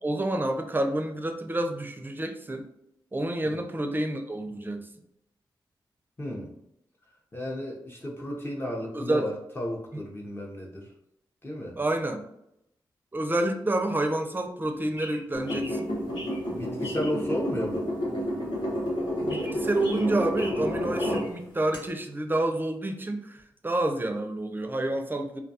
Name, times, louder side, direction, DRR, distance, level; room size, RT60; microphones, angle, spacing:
voice 1, 0.0-2.7 3.1-4.9 8.9-9.3 11.8-12.2 13.1-15.9 19.2-25.4, right 1 dB, 25° right, 5 dB, 0.4 m, -29 dB
voice 2, 6.2-6.5 7.3-10.9 11.4-11.8 16.5-17.9, equal, 25° left, -2 dB, 0.6 m, -33 dB
sound 1, 14.6-21.3, left 1 dB, 85° left, 0.9 m, -43 dB
sound 2, 15.3-21.3 21.7-21.8, equal, 70° left, 1.1 m, -30 dB
2.3 x 2.2 x 2.6 m, 0.79 s
supercardioid pair, 40°, 9 cm